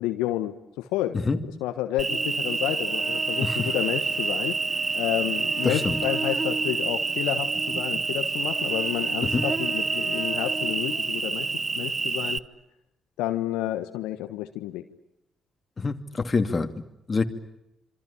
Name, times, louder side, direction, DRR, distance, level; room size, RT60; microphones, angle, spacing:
voice 1, 0.0-4.6 4.9-11.5 11.7-12.4 13.2-14.8, left 14 dB, 75° left, 8 dB, 1.3 m, -30 dB
Cricket, 2.0-12.4, right 4 dB, 35° right, 1.0 m, -27 dB
voice 2, 5.6-6.0 9.2-9.4 15.8-16.7 17.1-17.2, left 4 dB, 35° left, 8 dB, 2.6 m, -25 dB
27.0 x 24.5 x 8.6 m, 0.85 s
hypercardioid pair, 45°, 0 cm